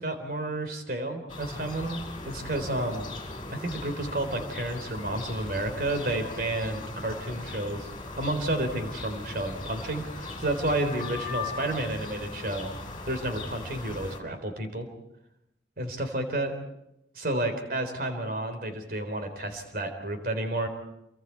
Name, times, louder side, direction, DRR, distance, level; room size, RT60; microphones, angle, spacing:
voice 1, 0.0-3.1 3.5-12.7 13.1-14.9 15.8-16.5 17.1-20.7, right 1 dB, 55° right, 6 dB, 3.7 m, -31 dB
sound 1, 1.3-14.2, left 3 dB, 30° left, 3.8 m, -39 dB
28.0 x 24.0 x 4.7 m, 0.85 s
head